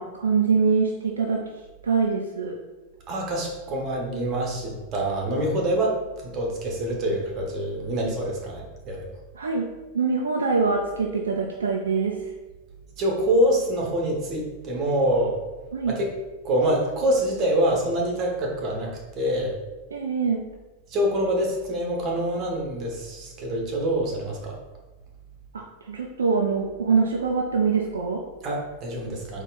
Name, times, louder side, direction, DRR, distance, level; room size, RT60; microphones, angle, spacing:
voice 1, 0.0-1.5 1.8-2.6 9.4-9.7 9.9-12.2 15.7-16.0 19.9-20.4 25.5-28.2, right 5 dB, 70° right, 1 dB, 0.4 m, -24 dB
voice 2, 3.1-6.0 6.2-9.1 13.0-15.4 15.9-16.1 16.4-19.6 20.9-24.6 28.4-29.4, right 1 dB, 35° right, 0 dB, 1.2 m, -25 dB
4.2 x 3.0 x 4.0 m, 1.1 s
figure-of-eight pair, 90°, 0 cm